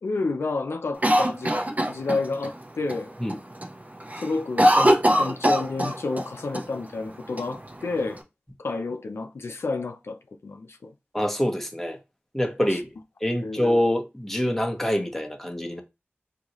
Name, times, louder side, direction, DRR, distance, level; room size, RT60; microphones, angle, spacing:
voice 1, 0.0-1.5 1.8-3.1 4.2-8.2 8.6-10.9 12.6-12.8 13.4-13.6, left 3 dB, 85° left, 0.5 m, -30 dB
Cough, 1.0-2.5 2.9-3.0 3.3-3.7 4.0-6.3 6.5-6.6 7.4-8.2, equal, 40° right, 0.9 m, -21 dB
voice 2, 11.1-12.0 12.3-12.9 13.2-15.8, left 1 dB, 5° left, 0.9 m, -25 dB
3.9 x 2.8 x 3.0 m
wide cardioid pair, 55°, 4 cm